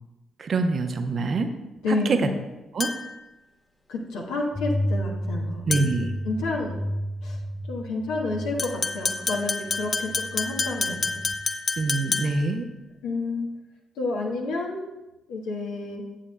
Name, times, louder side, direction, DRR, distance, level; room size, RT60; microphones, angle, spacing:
voice 1, 0.4-1.5 1.9-2.3 2.7-2.9 5.7-6.1 11.8-12.7, right 3 dB, 45° right, 7 dB, 0.8 m, -25 dB
voice 2, 1.8-2.2 3.9-5.6 6.3-6.7 7.2-7.4 7.7-11.2 13.0-13.5 14.0-14.8 15.3-16.0, left 3 dB, 65° left, -1 dB, 1.2 m, -29 dB
sound 1, 2.8-3.2 5.7-6.1 8.6-12.5, left 3 dB, 40° left, 0.8 m, -29 dB
sound 2, 4.5-11.3, equal, 5° right, 1.3 m, -33 dB
11.5 x 8.3 x 2.2 m, 1.0 s
figure-of-eight pair, 40°, 0 cm